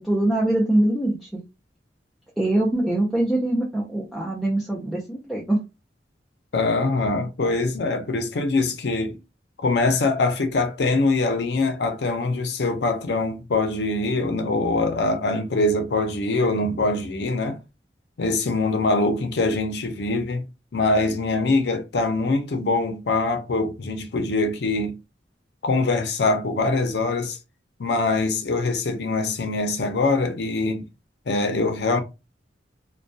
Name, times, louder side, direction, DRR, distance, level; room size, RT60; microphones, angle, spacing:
voice 1, 0.0-1.4 2.4-5.6, right 1 dB, ahead, 0.4 m, -23 dB
voice 2, 6.5-9.2 9.6-17.6 18.2-20.5 20.7-25.0 25.6-27.4 27.8-30.9 31.3-32.0, left 3 dB, 65° left, 0.5 m, -23 dB
2.2 x 2.2 x 2.5 m
head